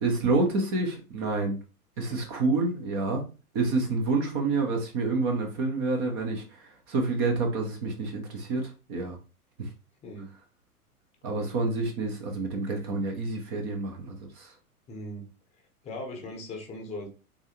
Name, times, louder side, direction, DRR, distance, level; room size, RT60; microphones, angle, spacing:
voice 1, 0.0-1.6 2.0-3.2 3.5-9.2 9.6-9.7 11.2-14.5, right 3 dB, 20° right, 3 dB, 0.4 m, -28 dB
voice 2, 14.9-15.3 15.8-17.1, left 1 dB, 15° left, 3 dB, 0.8 m, -39 dB
3.8 x 3.0 x 2.7 m, 0.33 s
figure-of-eight pair, 105°, 45 cm